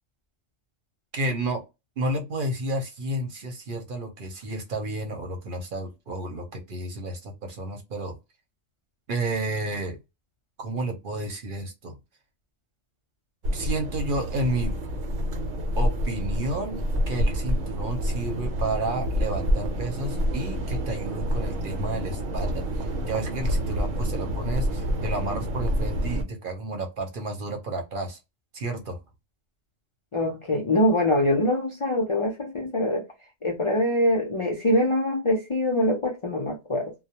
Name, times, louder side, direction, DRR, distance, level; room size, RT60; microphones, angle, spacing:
voice 1, 1.1-1.6 2.0-8.2 9.1-10.0 10.6-11.9 13.5-14.7 15.8-28.2 28.5-29.0, right 2 dB, 50° right, 0.8 m, -31 dB
sound 1, 13.4-26.2, equal, 85° right, 1.0 m, -28 dB
voice 2, 30.1-33.0 33.4-36.9, left 1 dB, 55° left, 0.3 m, -24 dB
2.3 x 2.0 x 2.8 m
omnidirectional pair, 1.3 m